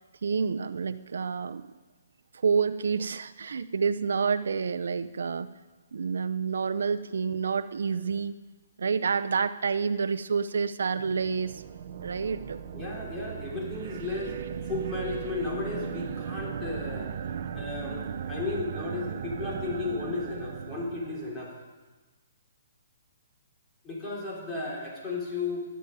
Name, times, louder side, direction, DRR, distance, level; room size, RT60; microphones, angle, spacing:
voice 1, 0.2-1.7 2.3-5.5 5.9-8.4 8.8-11.6 12.0-12.6, right 5 dB, 80° right, 11 dB, 0.7 m, -28 dB
sound 1, 11.0-21.5, right 7 dB, 45° right, 0.8 m, -37 dB
voice 2, 12.7-14.4 14.6-17.1 17.5-21.5 23.8-25.7, left 3 dB, 10° left, -4 dB, 3.8 m, -34 dB
14.0 x 10.5 x 9.4 m, 1.2 s
hypercardioid pair, 170°, 0 cm